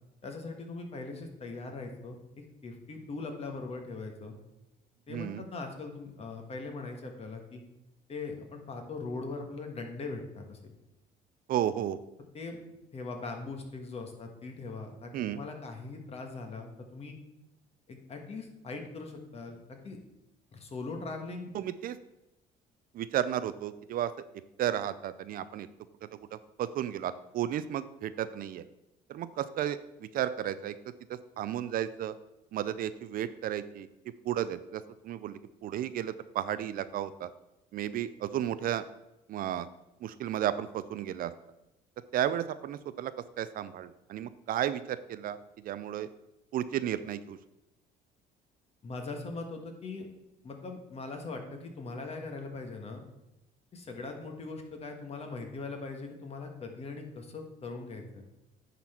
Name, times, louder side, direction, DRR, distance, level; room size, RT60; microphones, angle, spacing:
voice 1, 0.2-2.2 2.6-4.3 5.1-7.6 8.1-10.6 12.3-12.6 12.9-17.1 17.9-20.0 20.5-21.5 48.8-50.1 50.4-53.0 53.7-58.2, left 3 dB, 35° left, 4 dB, 1.4 m, -40 dB
voice 2, 5.1-5.4 11.5-12.0 15.1-15.4 21.5-22.0 22.9-24.1 24.6-25.7 26.0-28.6 29.1-30.7 31.1-32.1 32.5-33.9 34.2-37.3 37.7-38.9 39.3-39.7 40.0-41.3 42.1-46.1 46.5-47.4, right 11 dB, 60° right, 14 dB, 0.4 m, -33 dB
10.0 x 4.1 x 4.3 m, 0.93 s
cardioid pair, 110°, 17 cm